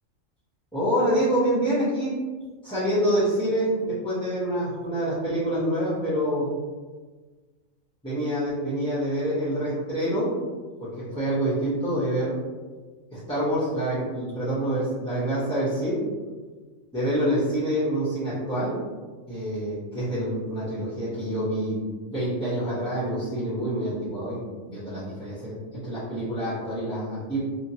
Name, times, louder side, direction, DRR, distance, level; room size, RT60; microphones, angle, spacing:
voice 1, 0.7-2.1 2.6-6.5 8.0-10.3 10.8-12.3 13.1-16.0 16.9-18.8 19.3-21.8 22.1-27.4, right 1 dB, 5° left, -12 dB, 0.6 m, -26 dB
2.8 x 2.6 x 2.7 m, 1.4 s
omnidirectional pair, 1.4 m